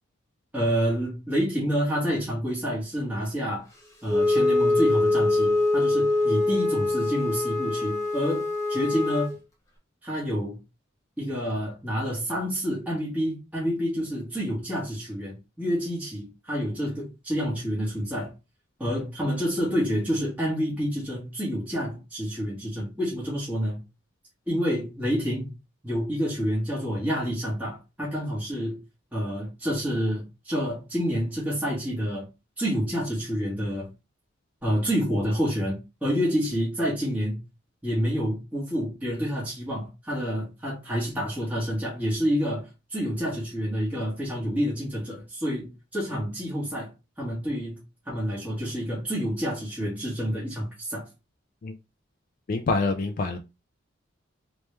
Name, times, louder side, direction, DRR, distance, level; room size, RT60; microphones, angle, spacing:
voice 1, 0.5-3.6 4.0-9.3 10.0-10.6 11.2-18.3 18.8-23.8 24.5-25.5 25.8-28.8 29.1-32.3 32.6-33.9 34.6-37.4 37.8-46.9 47.2-51.1, equal, 10° right, 1.3 m, -28 dB
Wind instrument woodwind instrument, 4.1-9.4, left 2 dB, 15° left, 0.8 m, -24 dB
voice 2, 52.5-53.4, left 3 dB, 45° left, 0.3 m, -26 dB
3.1 x 3.0 x 3.2 m
head